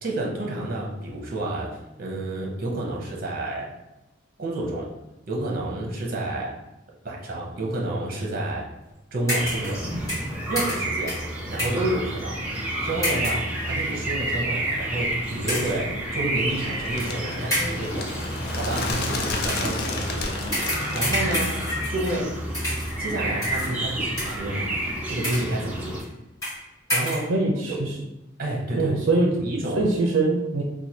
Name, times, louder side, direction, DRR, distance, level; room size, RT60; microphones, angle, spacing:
voice 1, 0.0-3.7 4.4-4.9 5.3-6.6 7.0-8.7 9.1-9.8 10.5-11.2 11.5-18.1 18.5-20.4 20.9-21.6 21.9-22.4 23.0-24.7 25.1-26.0 26.9-27.3 27.7-27.8 28.4-29.9, right 1 dB, 45° right, -2 dB, 0.8 m, -29 dB
sound 1, 9.3-9.8 10.1-11.9 13.0-13.5 14.2-14.3 15.5-15.9 17.0-17.1 17.5-17.9 19.4-19.7 20.5-22.3 22.5-23.0 23.4-23.8 24.2-24.6 25.1-25.6 26.0-26.1 26.4-26.6 26.9-27.3, equal, 15° left, 1.2 m, -29 dB
sound 2, 9.4-26.0, right 1 dB, 5° right, 0.6 m, -30 dB
Bird, 16.5-21.8, left 3 dB, 50° left, 0.4 m, -32 dB
voice 2, 27.3-28.0 28.8-29.4 29.7-30.6, right 2 dB, 80° right, 0 dB, 0.5 m, -22 dB
3.1 x 2.2 x 4.1 m, 0.97 s
head